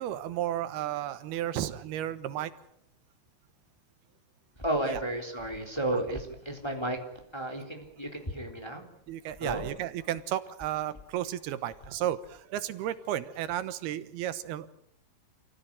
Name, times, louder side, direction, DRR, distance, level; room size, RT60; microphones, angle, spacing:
voice 1, 0.0-2.5 4.9-5.0 5.9-6.0 9.1-14.7, right 12 dB, 90° right, 12 dB, 3.2 m, -33 dB
voice 2, 4.6-7.0 7.3-8.9 9.4-9.7, right 1 dB, 5° left, 3 dB, 3.4 m, -32 dB
28.0 x 16.5 x 8.9 m, 0.73 s
omnidirectional pair, 4.4 m